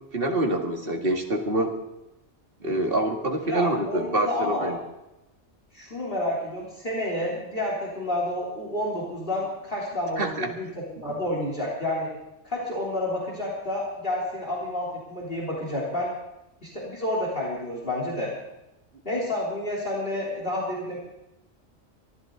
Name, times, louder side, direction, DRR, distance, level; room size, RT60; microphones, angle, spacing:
voice 1, 0.1-1.7 2.6-4.8 10.2-10.5, right 1 dB, 50° right, 2 dB, 2.2 m, -26 dB
voice 2, 3.5-4.7 5.7-12.1 12.5-16.1 16.6-18.3 19.1-21.0, left 1 dB, 45° left, -3 dB, 3.8 m, -29 dB
24.0 x 13.0 x 4.0 m, 0.91 s
omnidirectional pair, 1.3 m